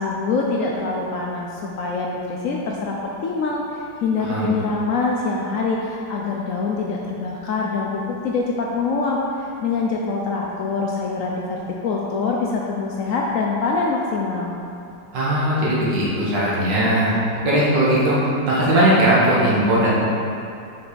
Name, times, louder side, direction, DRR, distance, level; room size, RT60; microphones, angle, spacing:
voice 1, 0.0-14.5, left 4 dB, 80° left, -2 dB, 0.7 m, -24 dB
voice 2, 15.1-17.2 17.4-18.2 18.5-19.9, right 1 dB, 75° right, -7 dB, 2.1 m, -18 dB
5.7 x 5.3 x 3.9 m, 2.6 s
omnidirectional pair, 2.0 m